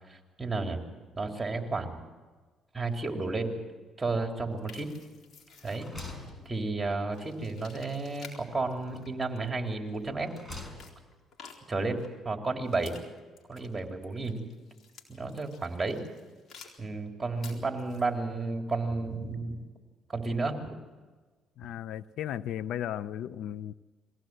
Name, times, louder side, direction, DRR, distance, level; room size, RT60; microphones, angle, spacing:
voice 1, 0.1-0.8 1.1-2.0 2.7-3.5 4.0-4.9 5.6-5.9 6.5-10.3 11.7-13.0 13.5-14.5 15.1-16.0 16.8-19.6 20.1-20.8, right 3 dB, 20° right, 3 dB, 3.8 m, -32 dB
sound 1, 4.6-6.6 7.1-8.4 8.7-10.0 10.6-12.1 12.6-16.8 17.1-18.1, left 5 dB, 60° left, 4.1 m, -52 dB
sound 2, 4.7-5.2 5.5-7.1 8.4-9.3 9.9-11.2, left 2 dB, 20° left, 5.5 m, -46 dB
voice 2, 21.6-23.7, left 11 dB, 75° left, 17 dB, 0.5 m, -36 dB
22.5 x 16.5 x 7.8 m, 1.3 s
supercardioid pair, 75°, 0 cm